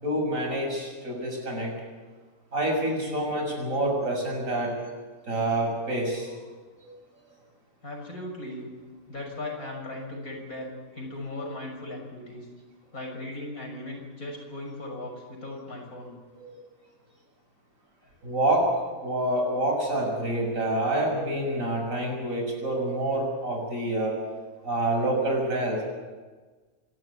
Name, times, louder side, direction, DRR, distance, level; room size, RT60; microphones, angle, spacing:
voice 1, 0.0-1.7 2.5-4.7 5.3-6.3 6.8-6.9 16.3-16.5 18.2-18.6 19.0-24.1 24.6-25.8, right 1 dB, 65° right, 0 dB, 7.1 m, -27 dB
voice 2, 7.8-8.7 9.1-12.4 12.9-16.1, left 2 dB, 80° left, 0 dB, 6.7 m, -37 dB
26.5 x 12.5 x 9.8 m, 1.4 s
omnidirectional pair, 1.5 m